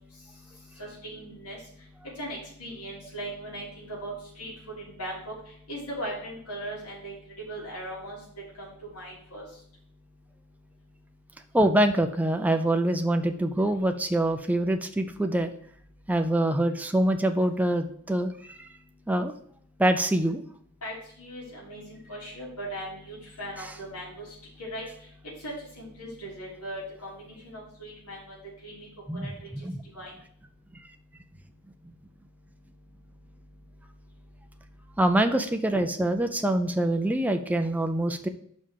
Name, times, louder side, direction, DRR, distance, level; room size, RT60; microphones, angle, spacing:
voice 1, 0.8-1.6 2.2-5.3 5.7-8.2 8.6-9.4 20.8-24.9 25.4-28.4 28.6-28.9 29.1-29.5 29.9-30.1, right 1 dB, 80° left, -5 dB, 3.6 m, -39 dB
voice 2, 11.5-15.5 16.1-18.7 19.1-19.3 19.8-20.4 29.1-29.3 29.6-29.8 35.0-38.3, right 1 dB, 5° right, 6 dB, 0.4 m, -25 dB
5.7 x 5.0 x 6.4 m, 0.63 s
head